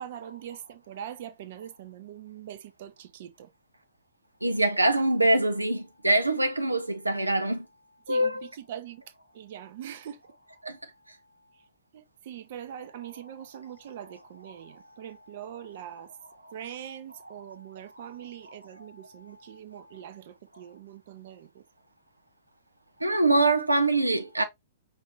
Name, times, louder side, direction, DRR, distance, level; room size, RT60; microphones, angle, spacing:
voice 1, 0.0-3.5 8.1-10.2 11.5-11.6 11.9-16.1 16.5-21.6, right 10 dB, 50° right, 0.7 m, -42 dB
voice 2, 4.4-7.6 8.1-8.4 10.6-10.7 23.0-24.4, right 2 dB, 90° right, 0.5 m, -24 dB
5.4 x 2.7 x 3.2 m
figure-of-eight pair, 110°, 0 cm